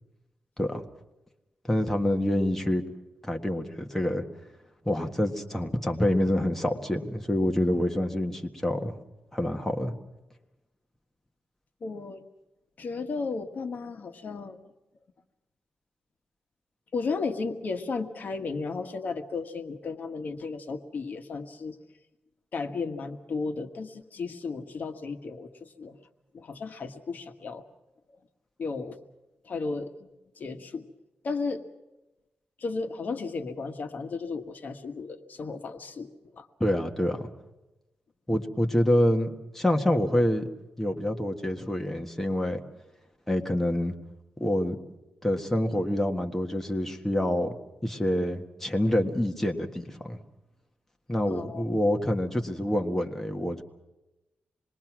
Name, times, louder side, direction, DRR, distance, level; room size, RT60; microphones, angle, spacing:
voice 1, 1.6-2.8 3.2-4.2 4.8-9.0 9.3-9.9 36.6-37.3 38.3-40.5 40.8-42.6 43.3-43.9 44.4-44.8 45.2-47.5 47.8-50.2 51.1-53.6, left 1 dB, 10° left, 3 dB, 1.7 m, -27 dB
voice 2, 11.8-12.2 12.8-14.6 16.9-21.8 22.5-26.0 26.3-27.6 28.6-29.0 29.4-30.1 30.3-30.8 31.2-31.6 32.6-36.5 51.3-51.6, left 4 dB, 55° left, 6 dB, 1.6 m, -34 dB
26.5 x 21.5 x 6.1 m, 1.0 s
wide cardioid pair, 135°, 4 cm